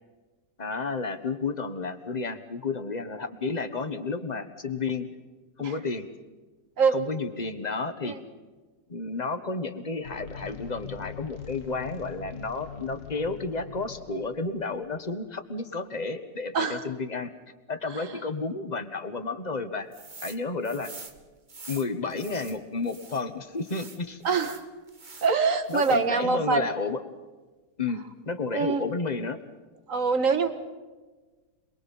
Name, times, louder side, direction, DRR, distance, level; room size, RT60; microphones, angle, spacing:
voice 1, 0.6-5.1 5.6-6.0 6.9-8.2 8.9-17.3 17.7-19.9 20.2-20.9 21.7-24.2 25.7-27.0 27.8-29.4, left 4 dB, 25° left, 8 dB, 1.3 m, -31 dB
sound 1, 10.0-15.2, left 8 dB, 45° left, 1.5 m, -43 dB
sound 2, 19.9-20.4 20.6-23.2 23.6-25.3 25.6-26.2, right 4 dB, 30° right, 1.3 m, -46 dB
voice 2, 24.2-24.6 25.2-26.7 28.5-28.8 29.9-30.5, right 5 dB, 45° right, 9 dB, 1.8 m, -24 dB
27.0 x 22.0 x 5.6 m, 1.3 s
omnidirectional pair, 2.0 m